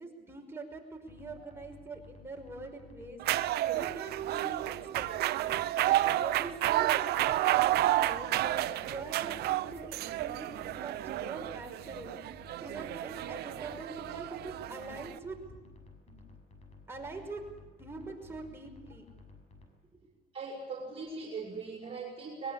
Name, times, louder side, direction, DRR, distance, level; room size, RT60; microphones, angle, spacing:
voice 1, 0.0-3.2 3.7-5.5 5.9-9.9 10.2-12.2 12.6-15.4 16.1-16.3 16.9-17.4 17.8-19.1, right 3 dB, 15° right, 1 dB, 5.5 m, -44 dB
sound 1, 1.1-19.7, left 3 dB, 40° left, 6.4 m, -55 dB
sound 2, 3.2-15.2, right 14 dB, 75° right, 0.8 m, -31 dB
voice 2, 20.3-22.5, right 4 dB, 35° right, -2 dB, 6.0 m, -40 dB
22.5 x 21.5 x 8.7 m, 1.1 s
cardioid pair, 110°, 17 cm